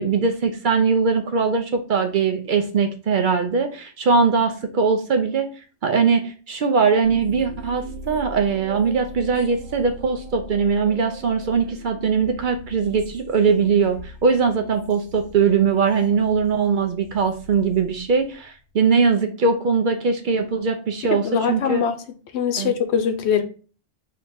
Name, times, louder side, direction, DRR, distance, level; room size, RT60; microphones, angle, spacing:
voice 1, 0.0-5.5 5.8-21.8 22.6-22.7, right 5 dB, 55° right, 0.6 m, -21 dB
sound 1, 7.0-18.6, right 1 dB, 85° right, 1.2 m, -41 dB
voice 2, 21.1-21.9 22.3-23.4, left 7 dB, 80° left, 0.9 m, -22 dB
3.4 x 2.9 x 4.2 m
omnidirectional pair, 1.1 m